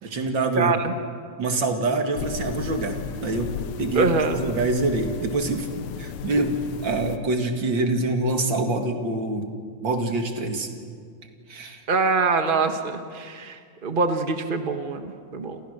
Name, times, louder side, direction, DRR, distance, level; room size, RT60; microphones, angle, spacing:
voice 1, 0.0-0.8 1.4-3.5 3.8-4.1 4.4-5.7 6.0-9.5 9.8-10.7 11.5-11.8, right 2 dB, 40° right, 4 dB, 2.8 m, -25 dB
voice 2, 0.6-1.0 3.9-4.4 11.9-15.6, right 4 dB, 55° right, 6 dB, 0.5 m, -24 dB
sound 1, 2.2-7.2, left 8 dB, 80° left, 2.3 m, -35 dB
29.0 x 27.5 x 6.7 m, 2.1 s
omnidirectional pair, 3.3 m